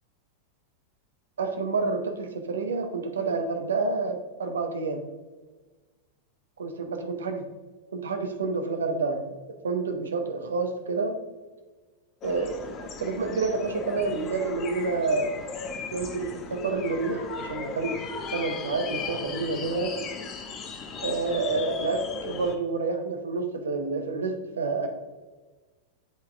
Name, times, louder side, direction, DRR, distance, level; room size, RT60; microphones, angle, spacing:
voice 1, 1.4-5.0 6.6-7.5 7.9-9.3 9.6-11.1 12.2-15.3 15.9-18.0 18.3-19.9 21.0-24.9, right 4 dB, 70° right, 6 dB, 0.8 m, -29 dB
sound 1, 12.2-22.5, left 5 dB, 30° left, 0.8 m, -36 dB
10.0 x 4.1 x 2.5 m, 1.3 s
figure-of-eight pair, 90°, 0 cm